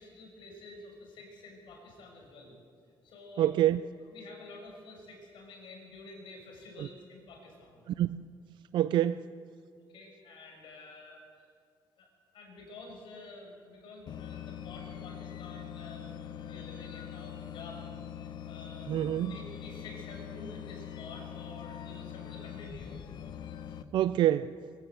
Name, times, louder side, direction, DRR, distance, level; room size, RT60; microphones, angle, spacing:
voice 1, 0.0-2.6 3.0-3.6 4.1-7.8 9.8-11.5 12.0-12.1 12.3-17.9 18.2-23.1, left 2 dB, 85° left, 1 dB, 6.1 m, -49 dB
voice 2, 3.4-3.8 6.8-6.9 7.9-8.3 8.7-9.3 18.9-19.4 23.9-24.5, right 12 dB, 70° right, 14 dB, 0.4 m, -26 dB
sound 1, 14.1-23.8, left 9 dB, 60° left, 1.0 m, -43 dB
22.5 x 16.0 x 8.0 m, 2.2 s
cardioid pair, 135°, 8 cm